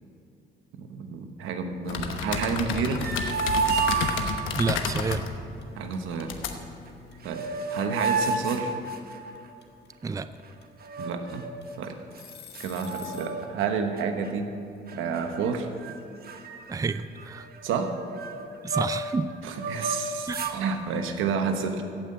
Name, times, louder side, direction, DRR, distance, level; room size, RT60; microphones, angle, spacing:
voice 1, 0.7-3.0 5.7-6.3 7.2-7.4 7.7-8.7 11.0-11.4 11.8-12.0 12.6-14.5 14.9-15.7 17.6-17.9 19.4-21.8, right 5 dB, 90° right, 6 dB, 1.2 m, -30 dB
sound 1, 1.9-7.5, left 6 dB, 85° left, 1.0 m, -32 dB
sound 2, 2.7-4.7 6.9-7.0 7.2-9.5 10.8-11.6 12.2-12.3 12.5-13.7 14.0-14.3 14.9-15.5 15.8-16.0 16.2-19.1 19.5-20.6, right 4 dB, 50° right, 1.2 m, -31 dB
sound 3, 3.1-13.4, left 8 dB, 55° left, 1.4 m, -49 dB
voice 2, 4.5-5.2 10.0-10.3 16.7-17.5 18.6-19.3 20.3-20.5, right 4 dB, 15° right, 12 dB, 0.4 m, -29 dB
15.5 x 5.7 x 8.6 m, 2.5 s
cardioid pair, 90°, 20 cm